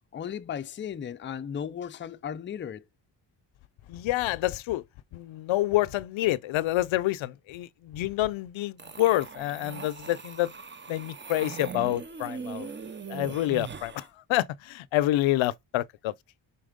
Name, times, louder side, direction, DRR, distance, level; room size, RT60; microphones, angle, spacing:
voice 1, 0.1-2.8, left 8 dB, 25° left, 0.4 m, -35 dB
voice 2, 3.9-4.8 5.1-10.5 10.9-12.7 13.1-16.1, left 15 dB, 85° left, 0.6 m, -28 dB
sound 1, 8.8-14.1, right 6 dB, 25° right, 0.7 m, -40 dB
5.8 x 4.3 x 5.1 m
cardioid pair, 120°, 46 cm